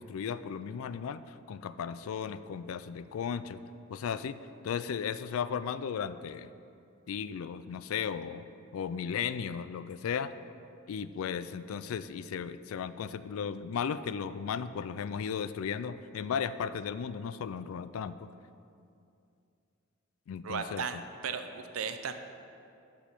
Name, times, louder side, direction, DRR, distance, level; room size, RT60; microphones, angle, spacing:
voice 1, 0.0-3.6 3.9-4.4 4.6-6.5 7.1-8.5 8.7-10.3 10.9-18.2 20.3-21.0, left 7 dB, 80° left, 14 dB, 0.3 m, -35 dB
voice 2, 20.4-22.1, right 6 dB, 85° right, 8 dB, 0.6 m, -36 dB
8.8 x 6.2 x 5.6 m, 2.5 s
head